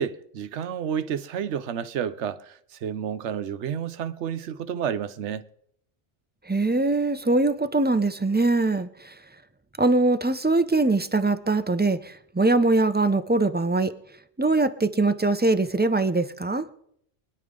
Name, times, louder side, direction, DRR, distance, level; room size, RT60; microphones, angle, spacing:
voice 1, 0.0-5.5, right 8 dB, 85° right, 1.0 m, -30 dB
voice 2, 6.5-9.1 9.8-13.9 14.4-16.7, right 2 dB, 15° right, 0.3 m, -22 dB
24.5 x 9.9 x 3.7 m
omnidirectional pair, 1.1 m